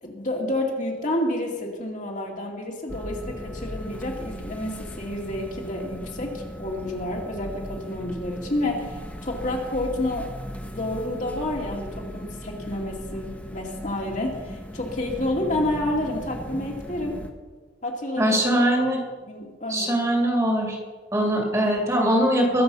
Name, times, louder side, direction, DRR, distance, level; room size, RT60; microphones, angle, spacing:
voice 1, 0.0-10.3 10.6-17.2 17.8-18.6 19.2-20.0 21.2-21.3, left 1 dB, 40° left, -1 dB, 2.4 m, -29 dB
sound 1, 2.9-17.3, equal, 10° left, 1.1 m, -37 dB
voice 2, 18.2-19.0 19.7-20.8 21.1-22.6, right 1 dB, 15° right, 0 dB, 2.5 m, -21 dB
22.5 x 7.9 x 5.6 m, 1.4 s
head